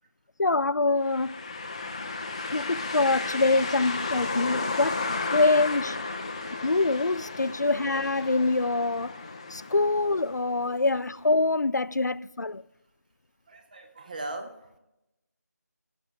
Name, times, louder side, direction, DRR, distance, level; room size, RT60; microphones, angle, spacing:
voice 1, 0.4-1.3 2.5-5.0 5.3-6.0 6.6-9.1 9.5-12.6, left 3 dB, 85° left, 0.4 m, -25 dB
sound 1, 1.0-10.8, left 3 dB, 20° left, 0.6 m, -34 dB
voice 2, 13.5-14.8, right 2 dB, 25° right, 0.9 m, -40 dB
15.5 x 7.1 x 3.3 m
figure-of-eight pair, 165°, 9 cm